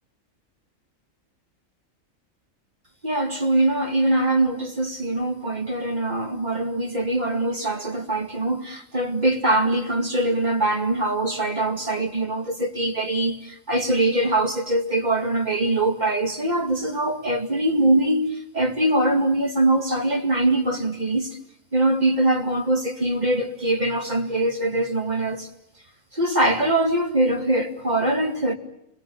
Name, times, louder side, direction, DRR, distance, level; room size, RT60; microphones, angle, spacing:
voice 1, 3.0-21.4 21.7-25.5 26.1-28.5, right 1 dB, 35° right, 2.3 m, -23 dB
27.0 x 22.0 x 8.5 m
omnidirectional pair, 1.3 m